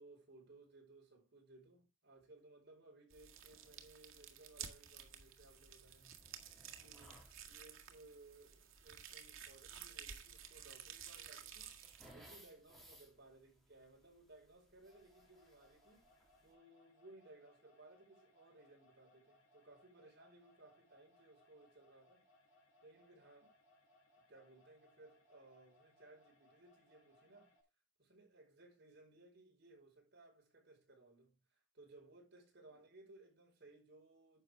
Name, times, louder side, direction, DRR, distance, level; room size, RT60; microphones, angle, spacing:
voice 1, 0.0-6.2 6.8-7.1 7.5-16.1 16.4-22.2 22.8-23.5 24.2-27.5 28.0-34.4, right 2 dB, 55° right, 4.9 m, -62 dB
sound 1, 3.1-12.1, right 8 dB, 85° right, 1.7 m, -53 dB
sound 2, 3.3-16.5, equal, ahead, 3.1 m, -67 dB
sound 3, 14.8-27.6, left 1 dB, 65° left, 3.8 m, -71 dB
10.5 x 6.8 x 3.5 m
head